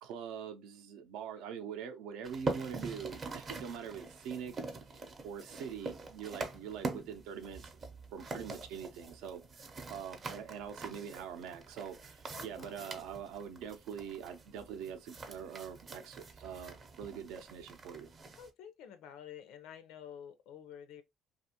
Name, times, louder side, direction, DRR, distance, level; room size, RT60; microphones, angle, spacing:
voice 1, 0.0-7.6 8.1-18.1, right 7 dB, 80° right, 0.5 m, -44 dB
sound 1, 2.2-18.5, right 3 dB, 35° right, 0.5 m, -44 dB
voice 2, 12.3-13.1 18.4-21.0, left 9 dB, 80° left, 0.5 m, -50 dB
2.5 x 2.4 x 2.7 m
cardioid pair, 120°, 0 cm